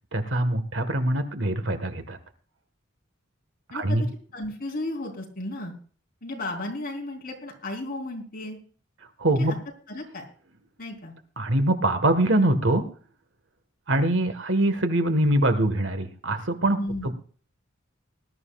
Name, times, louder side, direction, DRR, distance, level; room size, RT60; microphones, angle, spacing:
voice 1, 0.1-2.2 3.7-4.1 9.2-9.5 11.4-12.8 13.9-16.8 17.0-17.1, right 1 dB, 65° right, 8 dB, 1.7 m, -23 dB
voice 2, 4.3-5.7 6.2-8.6 9.3-9.6 9.9-10.2 10.8-11.1 16.8-17.1, left 1 dB, 45° left, 0 dB, 4.2 m, -34 dB
19.5 x 12.5 x 2.5 m, 0.42 s
head